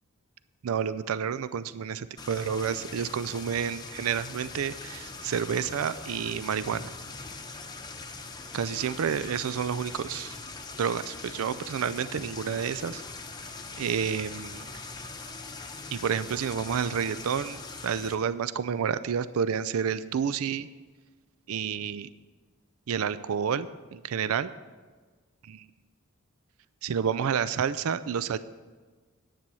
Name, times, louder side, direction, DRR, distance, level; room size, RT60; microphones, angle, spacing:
voice 1, 0.6-2.0 2.3-6.8 8.5-10.4 10.8-13.0 13.8-14.6 15.9-17.6 17.8-20.7 21.5-22.1 22.9-24.5 25.5-25.6 26.8-28.4, right 7 dB, 80° right, 14 dB, 0.4 m, -29 dB
sound 1, 2.2-18.1, left 3 dB, 20° left, 0.8 m, -42 dB
10.0 x 9.1 x 6.2 m, 1.4 s
head